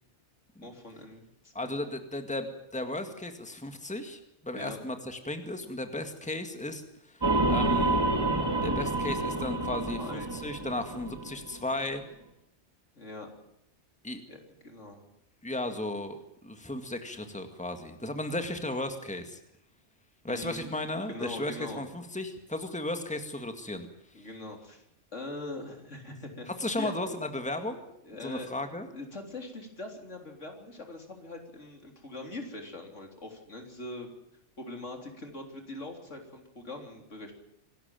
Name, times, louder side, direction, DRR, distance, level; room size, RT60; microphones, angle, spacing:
voice 1, 0.6-1.8 4.5-4.8 10.0-10.3 13.0-13.3 14.3-15.0 20.3-20.7 21.1-21.8 24.1-24.8 25.1-26.5 26.8-26.9 28.0-28.5 28.9-34.1 34.6-37.3, left 2 dB, 80° left, 3 dB, 4.0 m, -42 dB
voice 2, 1.5-6.8 7.1-8.0 8.6-12.0 14.0-14.2 15.4-19.4 20.2-23.9 24.2-24.3 26.5-27.8 28.2-28.9, left 1 dB, 5° left, 7 dB, 2.0 m, -35 dB
sound 1, 7.2-11.6, right 2 dB, 20° right, 2.7 m, -28 dB
26.5 x 12.5 x 9.2 m, 0.81 s
omnidirectional pair, 1.2 m